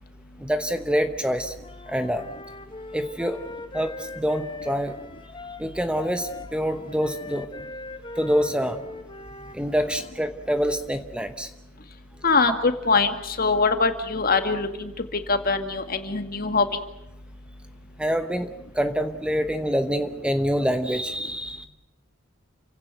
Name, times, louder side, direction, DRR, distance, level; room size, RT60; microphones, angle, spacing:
voice 1, 0.4-1.5 1.9-2.3 2.9-3.4 3.7-5.0 5.6-7.5 8.2-8.8 9.5-11.5 18.0-21.7, equal, 5° right, 8 dB, 1.0 m, -26 dB
Wind instrument woodwind instrument, 1.6-10.1, left 3 dB, 25° left, 1.6 m, -40 dB
voice 2, 12.2-16.7, left 4 dB, 45° left, 8 dB, 2.1 m, -23 dB
29.0 x 17.0 x 9.2 m, 0.85 s
head